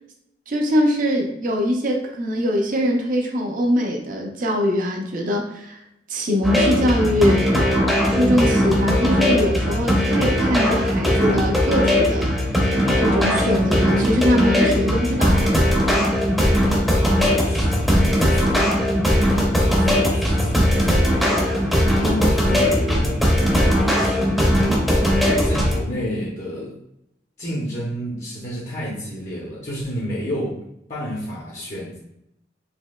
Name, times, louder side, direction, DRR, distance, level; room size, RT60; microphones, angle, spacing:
voice 1, 0.5-5.8 6.1-7.5 8.1-12.5 13.0-15.5, equal, 50° right, 1 dB, 0.6 m, -22 dB
sound 1, 6.4-25.8, equal, ahead, 0.6 m, -19 dB
voice 2, 17.4-18.7 19.4-24.5 25.4-26.8 27.4-30.6 30.9-32.0, equal, 45° left, -5 dB, 0.7 m, -31 dB
4.2 x 2.8 x 2.3 m, 0.82 s
head